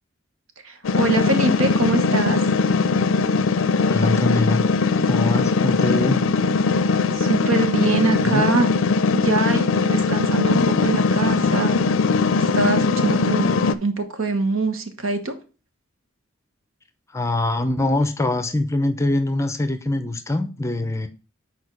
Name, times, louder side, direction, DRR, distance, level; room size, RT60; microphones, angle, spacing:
voice 1, 0.6-2.4 7.1-8.7 9.1-11.8 12.4-15.3, right 3 dB, 80° right, 1.2 m, -24 dB
sound 1, 0.8-13.7, left 4 dB, 70° left, 0.5 m, -20 dB
voice 2, 3.9-4.6 5.1-6.2 8.2-8.4 17.1-21.1, left 2 dB, 15° left, 0.6 m, -23 dB
6.6 x 4.5 x 4.8 m
head